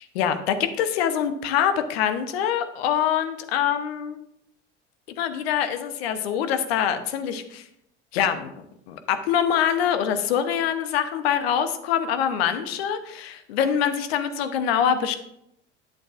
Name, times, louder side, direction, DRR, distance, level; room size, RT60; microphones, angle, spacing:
voice 1, 0.1-4.2 5.2-7.6 8.1-8.5 8.9-15.2, left 8 dB, 55° left, 9 dB, 0.9 m, -24 dB
11.0 x 7.2 x 2.5 m, 0.76 s
figure-of-eight pair, 75°, 36 cm